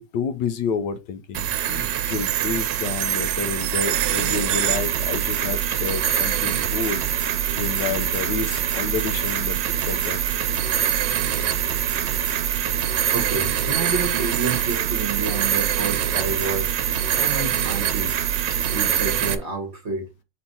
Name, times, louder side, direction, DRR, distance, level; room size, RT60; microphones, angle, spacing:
voice 1, 0.0-7.0 7.5-10.4, left 6 dB, 75° left, 1.3 m, -30 dB
sound 1, 1.3-19.3, right 10 dB, 80° right, 1.3 m, -24 dB
voice 2, 11.6-16.7 17.1-18.1 18.5-20.1, right 4 dB, 40° right, 1.3 m, -30 dB
4.5 x 4.2 x 5.3 m
omnidirectional pair, 2.0 m